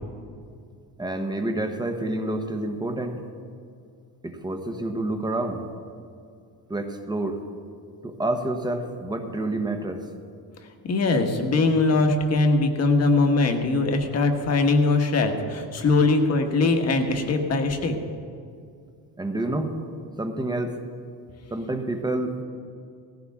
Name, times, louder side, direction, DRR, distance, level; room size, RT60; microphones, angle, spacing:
voice 1, 1.0-3.2 4.2-5.6 6.7-7.4 8.0-10.0 19.2-19.7 20.2-20.8 21.5-22.4, right 2 dB, 10° right, 5 dB, 1.0 m, -28 dB
voice 2, 10.8-18.0, left 3 dB, 40° left, 5 dB, 1.4 m, -21 dB
18.0 x 15.5 x 3.6 m, 2.3 s
cardioid pair, 165°, 41 cm